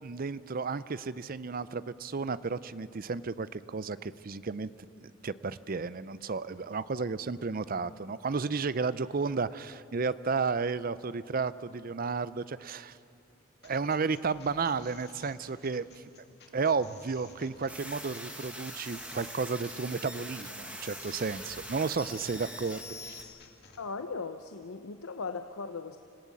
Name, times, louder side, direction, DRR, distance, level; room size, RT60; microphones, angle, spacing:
voice 1, 0.0-4.7 5.0-13.0 13.6-16.0 16.5-23.2, right 4 dB, 45° right, 16 dB, 0.5 m, -33 dB
sound 1, 13.6-23.8, left 4 dB, 50° left, 2.4 m, -55 dB
sound 2, 17.7-23.2, equal, 5° right, 1.7 m, -43 dB
voice 2, 23.8-26.0, left 4 dB, 90° left, 8 dB, 0.8 m, -38 dB
27.0 x 16.0 x 8.4 m, 2.5 s
head